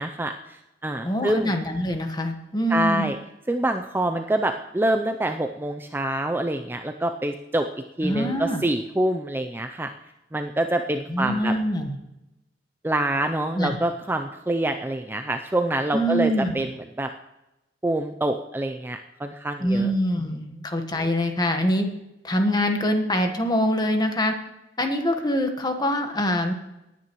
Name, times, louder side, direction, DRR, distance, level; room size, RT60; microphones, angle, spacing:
voice 1, 0.0-1.5 2.7-3.2 3.5-7.7 8.0-9.9 10.3-11.5 12.8-16.7 17.0-17.1 17.8-19.9, right 1 dB, 10° right, 6 dB, 0.4 m, -26 dB
voice 2, 1.0-3.1 8.0-8.6 11.1-12.0 13.5-13.8 15.9-16.6 19.6-21.9 22.2-24.3 24.8-26.5, equal, 20° left, 5 dB, 1.3 m, -24 dB
18.5 x 9.6 x 3.0 m, 0.93 s
head